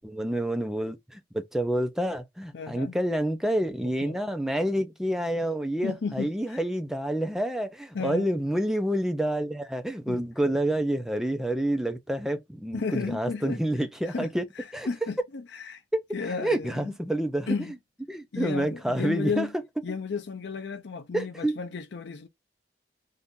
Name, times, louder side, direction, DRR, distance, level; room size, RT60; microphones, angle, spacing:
voice 1, 0.0-14.4 14.7-14.9 15.9-16.0 16.4-17.7 18.1-19.5 21.1-21.6, right 1 dB, 5° right, 0.5 m, -28 dB
voice 2, 2.5-3.0 3.8-4.2 5.8-6.6 7.9-8.3 10.1-10.2 12.7-13.6 14.1-14.3 14.6-15.8 16.1-16.9 17.5-17.7 18.3-19.5 19.8-22.3, left 5 dB, 70° left, 0.5 m, -33 dB
2.7 x 2.5 x 3.6 m
head